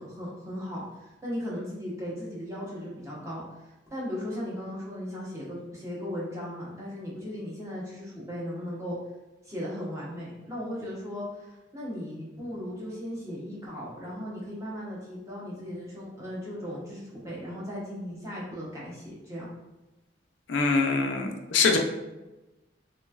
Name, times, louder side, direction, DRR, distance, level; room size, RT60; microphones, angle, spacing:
voice 1, 0.0-9.0 9.4-19.5, equal, 15° right, -6 dB, 0.8 m, -37 dB
voice 2, 20.5-21.8, left 4 dB, 85° left, 3 dB, 0.4 m, -24 dB
3.1 x 3.0 x 2.4 m, 1.0 s
head